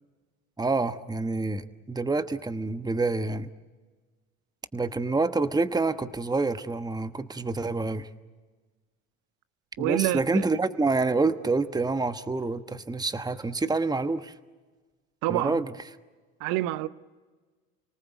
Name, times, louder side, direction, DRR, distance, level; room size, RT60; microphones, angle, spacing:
voice 1, 0.6-3.5 4.7-8.1 9.8-14.3 15.3-15.8, right 3 dB, 10° right, 1.2 m, -27 dB
voice 2, 9.8-10.4 15.2-15.6 16.4-16.9, right 15 dB, 75° right, 0.9 m, -27 dB
29.5 x 19.0 x 8.0 m
supercardioid pair, 70°, 33 cm